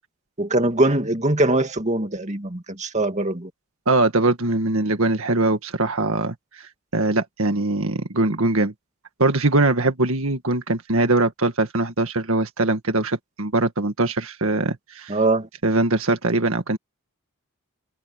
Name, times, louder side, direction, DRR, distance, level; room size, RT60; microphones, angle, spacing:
voice 1, 0.4-3.5 15.1-15.5, right 2 dB, 30° right, 2.2 m, -22 dB
voice 2, 3.9-8.7 9.2-15.2 15.6-16.8, right 2 dB, 65° right, 1.8 m, -22 dB
head